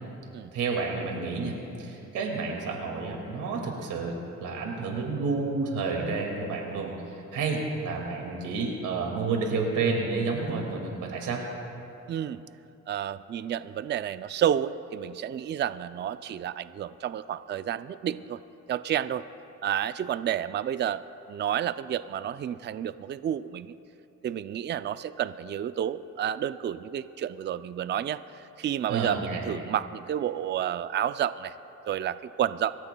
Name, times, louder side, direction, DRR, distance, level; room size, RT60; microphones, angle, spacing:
voice 1, 0.5-11.4 28.9-29.5, right 4 dB, 85° right, 1 dB, 2.2 m, -30 dB
voice 2, 12.1-12.4 12.9-18.4 18.7-19.3 19.6-21.0 21.3-23.7 24.2-28.2 28.6-31.5 31.9-32.7, right 10 dB, 35° right, 14 dB, 0.4 m, -30 dB
25.0 x 14.0 x 2.3 m, 2.9 s
cardioid pair, 90°, 30 cm